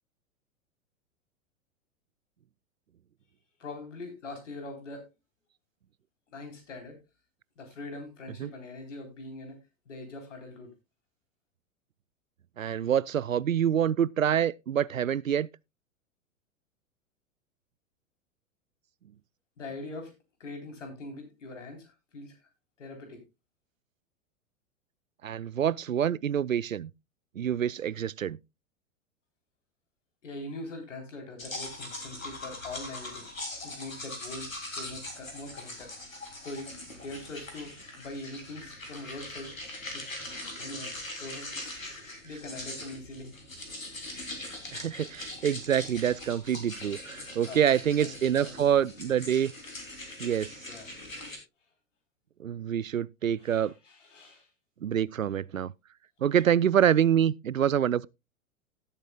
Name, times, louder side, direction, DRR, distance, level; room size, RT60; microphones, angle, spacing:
voice 1, 3.6-5.1 6.3-7.0 7.6-10.7 19.6-20.1 20.4-22.4 22.8-23.2 30.2-33.3 33.6-35.9 36.4-40.9 41.2-41.6 42.2-43.3 47.5-47.6 48.0-48.6 50.7-50.9 53.4-54.5, left 2 dB, 65° left, 3.8 m, -43 dB
voice 2, 12.6-15.5 25.2-26.9 27.4-28.4 44.7-49.5 50.2-50.5 52.4-53.7 54.8-55.7 56.2-58.1, right 9 dB, 80° right, 0.5 m, -26 dB
sound 1, 31.4-51.4, left 1 dB, 80° left, 3.3 m, -41 dB
17.0 x 8.1 x 2.3 m
figure-of-eight pair, 95°, 40 cm